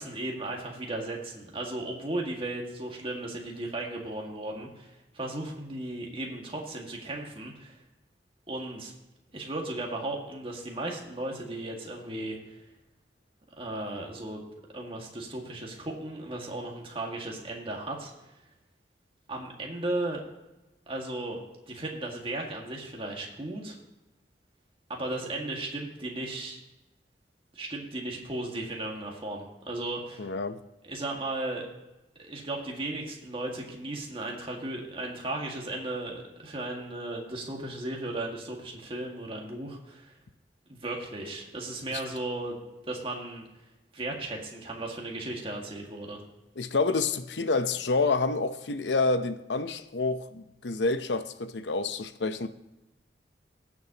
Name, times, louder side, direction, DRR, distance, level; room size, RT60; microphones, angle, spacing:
voice 1, 0.0-7.8 8.5-8.9 9.3-12.6 13.6-14.4 14.7-18.1 19.3-20.2 20.9-21.4 21.7-23.8 24.9-26.6 27.5-30.3 30.8-31.7 32.2-40.1 40.7-42.6 42.9-43.4 43.9-46.2, right 2 dB, 30° right, 0 dB, 1.9 m, -35 dB
voice 2, 30.2-30.6 41.9-42.0 46.6-52.5, left 3 dB, 85° left, 10 dB, 0.8 m, -28 dB
19.0 x 7.4 x 2.9 m, 0.98 s
head